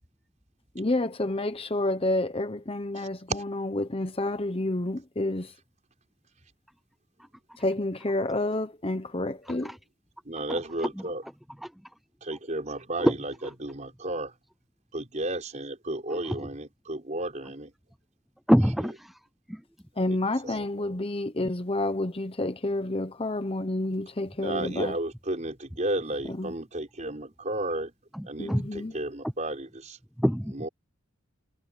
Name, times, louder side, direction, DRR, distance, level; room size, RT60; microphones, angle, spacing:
voice 1, 0.7-5.5 7.6-9.7 20.0-25.0 26.3-26.5 28.4-29.0, left 2 dB, 25° left, 1.0 m, -29 dB
voice 2, 3.0-3.4 10.2-11.2 12.2-13.3 13.6-14.3 14.9-17.7 20.1-20.2 20.4-21.0 24.4-27.9 28.2-30.0 30.5-30.7, right 1 dB, 35° right, 4.9 m, -33 dB
voice 3, 18.5-19.1 19.5-19.6 28.1-28.7 30.2-30.7, equal, ahead, 0.4 m, -24 dB
head